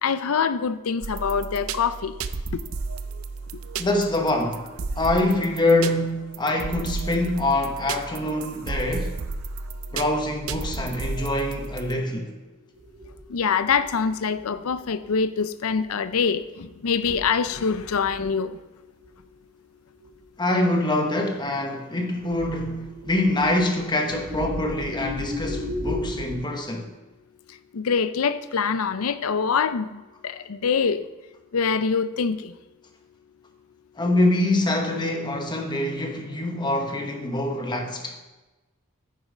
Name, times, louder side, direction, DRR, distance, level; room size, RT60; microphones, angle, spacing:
voice 1, 0.0-2.1 13.3-18.5 27.7-31.0 31.5-32.5, left 6 dB, 80° left, 0.5 m, -24 dB
sound 1, 1.0-12.0, right 4 dB, 75° right, 0.6 m, -33 dB
voice 2, 3.8-4.6 5.0-9.2 9.9-12.3 20.4-26.9 34.0-38.2, left 1 dB, 20° left, 1.1 m, -25 dB
sound 2, 12.8-15.1 15.7-15.9 16.3-16.4 16.7-18.4 19.0-19.1 20.0-20.1 22.2-26.4, left 1 dB, 55° right, 2.0 m, -36 dB
9.5 x 7.2 x 5.0 m
head